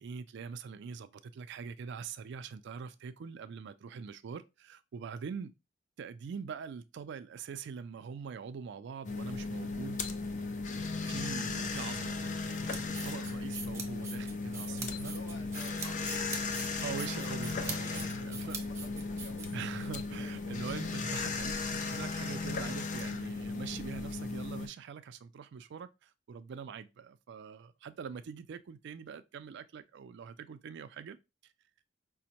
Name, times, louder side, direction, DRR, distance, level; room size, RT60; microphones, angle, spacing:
voice 1, 0.0-5.5 6.0-10.1 11.0-15.2 15.8-16.2 16.8-18.6 19.5-31.2, right 6 dB, 60° right, 0.3 m, -43 dB
sound 1, 9.0-24.7, left 3 dB, 40° left, 0.4 m, -36 dB
sound 2, 12.5-19.9, right 4 dB, 15° right, 0.6 m, -43 dB
voice 2, 14.6-21.0 28.1-28.2, left 2 dB, 65° left, 1.0 m, -54 dB
5.0 x 2.1 x 2.8 m
head